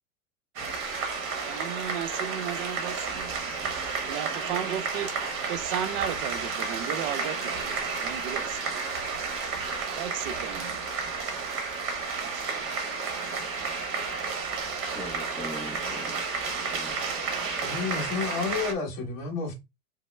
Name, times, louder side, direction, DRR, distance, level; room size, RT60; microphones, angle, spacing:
sound 1, 0.6-18.7, right 4 dB, 30° right, 0.9 m, -32 dB
voice 1, 1.5-3.7 4.1-5.2 5.5-8.8 9.9-10.8 12.2-12.5, right 10 dB, 55° right, 0.6 m, -35 dB
voice 2, 14.8-17.0, equal, ahead, 0.4 m, -41 dB
voice 3, 17.6-19.5, left 5 dB, 30° left, 1.3 m, -31 dB
5.1 x 2.0 x 2.2 m
supercardioid pair, 145°, 42 cm